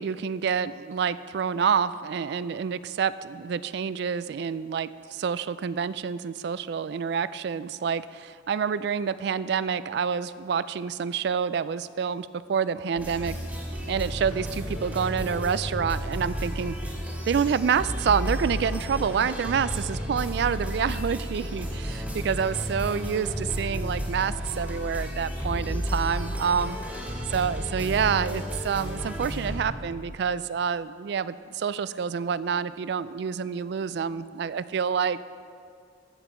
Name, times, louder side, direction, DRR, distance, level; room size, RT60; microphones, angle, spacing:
voice 1, 0.0-13.4 13.9-16.7 17.3-26.8 27.3-35.2, right 7 dB, 65° right, 16 dB, 0.3 m, -28 dB
sound 1, 13.0-29.6, equal, 10° right, 1.7 m, -32 dB
15.0 x 7.1 x 4.4 m, 2.3 s
head